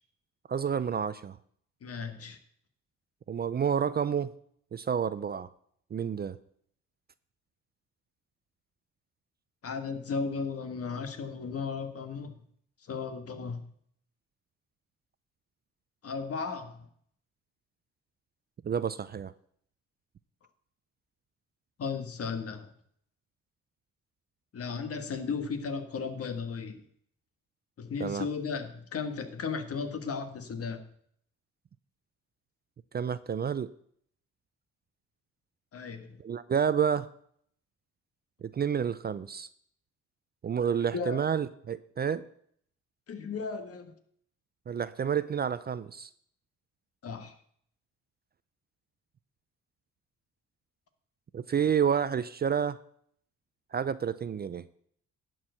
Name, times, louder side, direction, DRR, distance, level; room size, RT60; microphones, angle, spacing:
voice 1, 0.5-1.4 3.3-4.3 4.7-5.5 5.9-6.4 18.6-19.3 28.0-28.3 32.9-33.7 36.2-37.1 38.4-39.5 40.4-42.2 44.7-46.1 51.3-52.8 53.7-54.6, right 7 dB, 35° right, 0.4 m, -29 dB
voice 2, 1.8-2.4 9.6-12.4 12.9-13.6 16.0-16.9 21.8-22.7 24.5-26.8 27.8-30.8 35.7-36.2 40.9-41.2 43.1-43.9 47.0-47.3, left 5 dB, 50° left, 1.4 m, -35 dB
11.0 x 4.7 x 7.7 m
cardioid pair, 90°, 30 cm